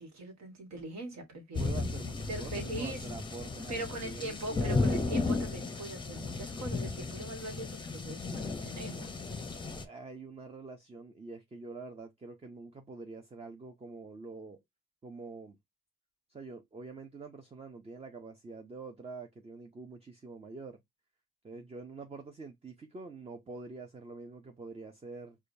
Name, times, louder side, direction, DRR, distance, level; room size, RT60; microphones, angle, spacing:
voice 1, 0.0-1.7 2.3-3.0 3.7-9.2, right 1 dB, 65° right, 1.4 m, -41 dB
sound 1, 1.5-9.8, left 3 dB, 15° left, 0.7 m, -34 dB
voice 2, 1.5-4.9 9.8-14.6 15.0-15.6 16.3-20.8 21.4-25.4, right 4 dB, 20° right, 0.6 m, -46 dB
4.9 x 2.3 x 2.6 m
cardioid pair, 90°, 30 cm